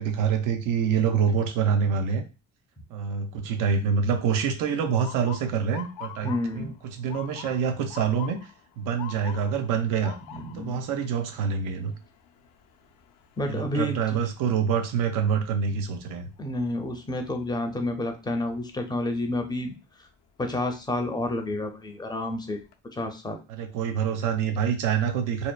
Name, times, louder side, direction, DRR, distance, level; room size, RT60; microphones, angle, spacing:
voice 1, 0.0-2.2 2.9-8.5 8.8-10.2 10.5-11.9 13.5-16.3 23.5-25.5, right 7 dB, 90° right, 6 dB, 0.6 m, -26 dB
Motor vehicle (road) / Siren, 5.0-16.9 17.4-17.8 18.6-18.9 20.8-21.0 21.5-21.6 22.0-22.7, left 11 dB, 80° left, 0.5 m, -46 dB
voice 2, 6.2-6.8 10.3-10.8 13.4-14.2 16.4-19.7 20.0-20.1 20.4-22.6 22.9-23.4, left 1 dB, 15° left, 4 dB, 0.4 m, -30 dB
2.7 x 2.1 x 2.2 m, 0.30 s
cardioid pair, 115°, 31 cm